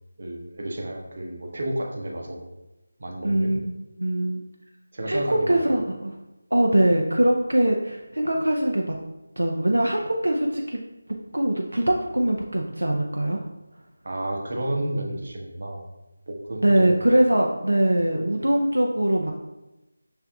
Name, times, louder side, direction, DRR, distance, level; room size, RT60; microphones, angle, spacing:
voice 1, 0.2-2.4 3.0-3.5 4.9-5.7 14.0-15.8 16.3-16.9, right 1 dB, 50° right, 0 dB, 0.8 m, -31 dB
voice 2, 3.2-3.7 4.0-4.4 5.1-6.1 6.5-8.9 9.4-10.8 11.3-13.4 16.6-19.3, right 1 dB, 70° right, 1 dB, 0.4 m, -22 dB
5.9 x 3.3 x 2.3 m, 1.0 s
figure-of-eight pair, 160°, 0 cm